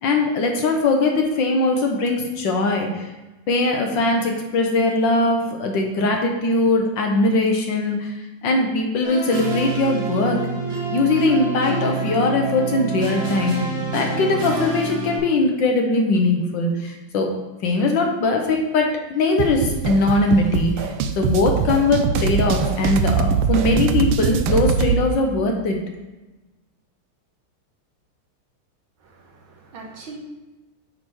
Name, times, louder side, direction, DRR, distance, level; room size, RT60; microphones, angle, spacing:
voice 1, 0.0-3.1 3.5-8.1 8.4-10.4 10.9-17.3 17.6-20.9 21.2-25.8, left 2 dB, 65° left, 2 dB, 1.5 m, -20 dB
sound 1, 9.0-15.2, right 3 dB, 50° right, 2.1 m, -27 dB
sound 2, 19.4-25.0, right 6 dB, 90° right, 1.5 m, -22 dB
voice 2, 29.0-30.2, right 4 dB, 65° right, -1 dB, 2.0 m, -41 dB
8.7 x 4.0 x 4.6 m, 1.1 s
omnidirectional pair, 2.4 m